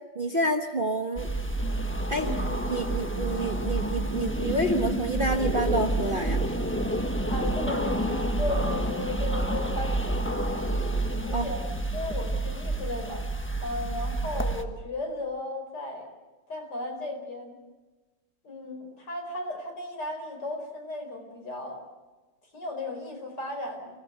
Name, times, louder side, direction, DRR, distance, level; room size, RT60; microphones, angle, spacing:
voice 1, 0.1-1.3 2.1-2.3 2.7-6.4 11.3-11.5, right 1 dB, 30° right, 3 dB, 1.5 m, -28 dB
sound 1, 1.2-14.6, right 1 dB, 5° left, 1.2 m, -29 dB
voice 2, 2.2-2.5 7.3-10.7 11.3-11.6 11.9-13.3 13.6-16.1 16.5-17.6 18.4-21.8 22.5-24.0, left 2 dB, 60° left, 2 dB, 5.6 m, -35 dB
27.5 x 18.0 x 8.1 m, 1.2 s
omnidirectional pair, 2.0 m